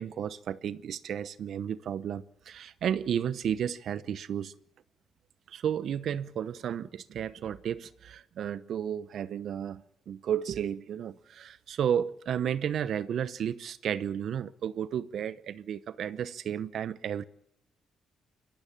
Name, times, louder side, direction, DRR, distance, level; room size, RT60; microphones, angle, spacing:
voice 1, 0.0-4.5 5.5-17.2, right 9 dB, 65° right, 0.9 m, -33 dB
22.5 x 16.0 x 8.8 m
cardioid pair, 90°, 0 cm